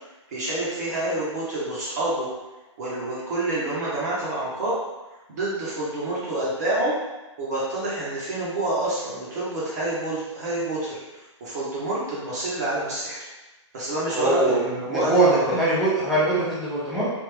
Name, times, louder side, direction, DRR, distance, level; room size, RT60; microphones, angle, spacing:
voice 1, 0.3-2.3 2.8-4.8 5.3-6.9 7.4-11.0 11.4-13.3 13.7-15.6, right 1 dB, 35° right, -7 dB, 0.7 m, -27 dB
voice 2, 14.1-17.1, right 2 dB, ahead, -12 dB, 0.3 m, -22 dB
3.3 x 2.4 x 3.1 m, 1.1 s
hypercardioid pair, 175°, 16 cm